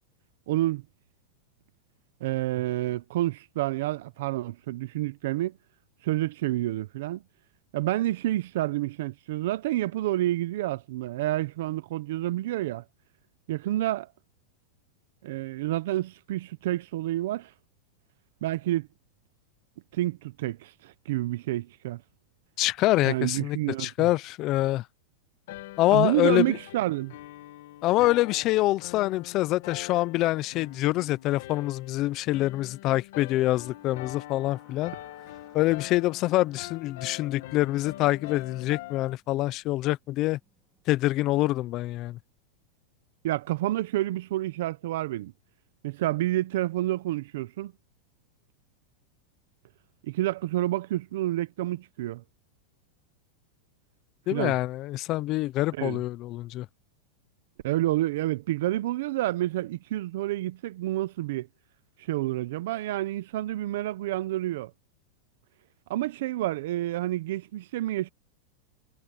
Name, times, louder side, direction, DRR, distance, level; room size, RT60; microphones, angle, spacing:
voice 1, 0.5-0.8 2.2-5.6 6.0-7.2 7.7-12.8 13.5-14.1 15.2-17.5 18.4-18.9 19.9-22.0 23.0-24.1 25.9-27.1 43.2-45.3 45.8-47.7 50.0-52.2 54.3-54.6 55.8-56.0 57.6-61.5 62.1-64.7 65.9-68.1, right 15 dB, 55° right, 0.8 m, -29 dB
voice 2, 22.6-24.8 25.8-26.6 27.8-34.9 35.5-40.4 40.9-42.2 54.3-56.7, left 17 dB, 25° left, 0.5 m, -25 dB
sound 1, 25.5-39.1, left 16 dB, 50° left, 1.2 m, -43 dB
sound 2, 33.2-41.2, right 1 dB, 5° right, 3.7 m, -64 dB
supercardioid pair, 180°, 0 cm